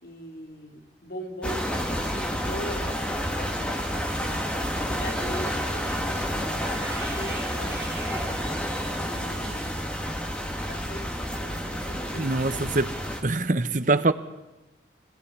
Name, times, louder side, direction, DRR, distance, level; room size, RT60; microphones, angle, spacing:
voice 1, 0.0-4.5 4.8-7.9 8.9-9.9 10.7-13.0, equal, 55° left, 2 dB, 4.2 m, -40 dB
sound 1, 1.4-13.2, equal, 5° left, 2.2 m, -30 dB
Cat / Bathtub (filling or washing), 3.8-9.8, right 2 dB, 15° right, 4.5 m, -43 dB
voice 2, 12.1-12.9 13.2-14.1, right 2 dB, 45° right, 11 dB, 1.0 m, -23 dB
25.5 x 18.5 x 9.8 m, 1.1 s
head